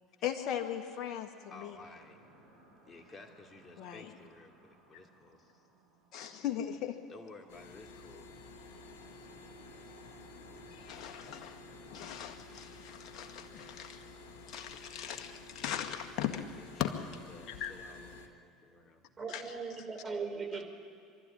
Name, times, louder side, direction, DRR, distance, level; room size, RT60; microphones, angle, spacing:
voice 1, 0.2-1.8 3.8-4.1 6.1-7.0 10.7-11.6 11.9-14.1 14.5-16.4 16.8-16.9 17.5-17.7 19.3-19.5, left 10 dB, 55° left, 4 dB, 1.9 m, -38 dB
voice 2, 1.5-2.2 2.8-5.6 7.1-8.4 16.2-19.1, left 3 dB, 30° left, 3 dB, 2.8 m, -53 dB
sound 1, 1.8-19.2, right 2 dB, 85° right, 4.4 m, -62 dB
sound 2, 7.5-18.3, left 3 dB, 70° left, 1.5 m, -52 dB
voice 3, 19.2-20.7, right 5 dB, 25° right, 4 dB, 3.6 m, -38 dB
24.5 x 13.0 x 9.9 m, 2.3 s
hypercardioid pair, 70°, 0 cm